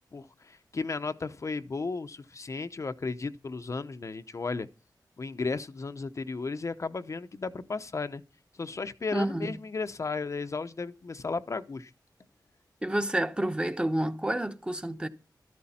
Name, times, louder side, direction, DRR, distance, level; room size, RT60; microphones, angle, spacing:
voice 1, 0.1-4.7 5.2-8.2 8.6-11.9, left 4 dB, 45° left, 0.8 m, -34 dB
voice 2, 9.1-9.5 12.8-15.1, right 1 dB, 15° right, 1.1 m, -29 dB
13.0 x 13.0 x 4.3 m
wide cardioid pair, 130°, 8 cm